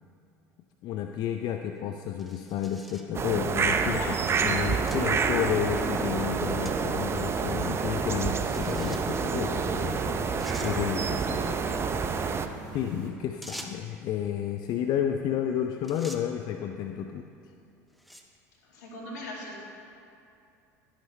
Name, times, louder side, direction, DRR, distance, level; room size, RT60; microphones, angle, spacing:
voice 1, 0.8-4.2 4.4-11.7 12.7-17.3, left 9 dB, 50° left, 6 dB, 0.5 m, -31 dB
sound 1, 2.2-3.1 3.9-4.0 4.9-5.0 5.5-5.6 6.6-6.8 7.1-7.2 8.5-9.2 9.9-10.0 10.4-10.7 13.4-13.9 15.3-15.5 15.8-16.2 17.0-17.3 17.9-18.4, equal, ahead, 0.9 m, -45 dB
sound 2, 3.1-12.5, right 5 dB, 30° right, 0.5 m, -28 dB
voice 2, 3.8-5.2 18.6-19.6, left 1 dB, 75° left, -3 dB, 2.2 m, -40 dB
sound 3, 4.2-13.1, right 3 dB, 70° right, 1.4 m, -44 dB
11.5 x 9.8 x 3.2 m, 2.6 s
hypercardioid pair, 75°, 9 cm